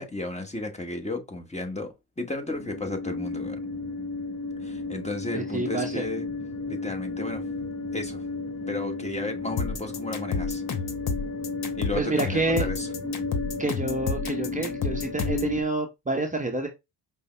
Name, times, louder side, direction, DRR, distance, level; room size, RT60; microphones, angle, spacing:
voice 1, 0.0-3.6 4.6-6.3 6.7-7.5 7.9-8.2 8.7-10.6 11.7-12.9, left 2 dB, 15° left, 1.2 m, -33 dB
sound 1, 2.5-15.6, left 3 dB, 35° left, 1.5 m, -33 dB
voice 2, 5.3-6.1 11.9-12.7 13.6-16.7, right 2 dB, 15° right, 0.8 m, -28 dB
sound 2, 9.6-15.5, left 5 dB, 50° left, 1.0 m, -30 dB
5.3 x 2.1 x 3.3 m
hypercardioid pair, 50°, 46 cm